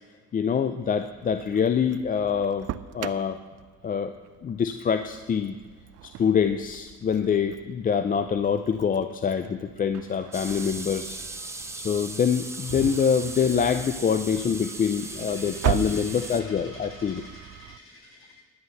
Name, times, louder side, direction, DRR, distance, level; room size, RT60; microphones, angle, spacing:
voice 1, 0.3-2.7 2.9-3.4 3.8-4.1 4.4-5.6 6.0-11.2 11.7-17.2, left 7 dB, 30° left, 10 dB, 0.5 m, -25 dB
Engine starting, 0.8-17.8, right 13 dB, 60° right, 0.5 m, -39 dB
sound 1, 10.3-16.4, right 2 dB, 10° right, 0.8 m, -38 dB
voice 2, 15.1-18.4, left 1 dB, 45° left, -2 dB, 3.8 m, -47 dB
11.0 x 9.7 x 6.4 m, 1.5 s
cardioid pair, 135°, 29 cm